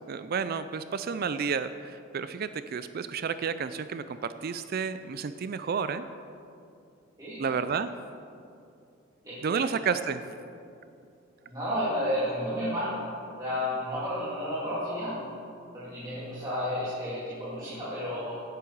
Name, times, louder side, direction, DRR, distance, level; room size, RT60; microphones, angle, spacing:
voice 1, 0.1-6.1 7.4-7.9 9.4-10.2, right 6 dB, 45° right, 12 dB, 0.4 m, -31 dB
voice 2, 9.2-9.6 11.5-13.0 13.3-15.2 15.7-18.3, equal, 20° right, -10 dB, 2.4 m, -32 dB
16.5 x 8.5 x 4.7 m, 2.6 s
head